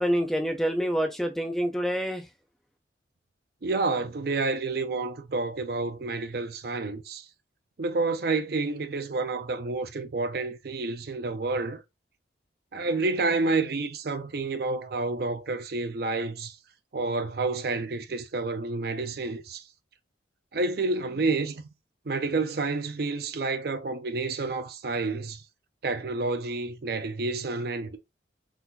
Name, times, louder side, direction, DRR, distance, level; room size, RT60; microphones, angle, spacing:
voice 1, 0.0-2.3, equal, ahead, 0.3 m, -27 dB
voice 2, 3.6-7.2 7.8-11.8 12.7-16.5 16.9-19.6 20.5-21.6 22.1-25.4 25.8-28.0, right 3 dB, 55° right, 0.5 m, -29 dB
3.8 x 2.4 x 2.7 m
head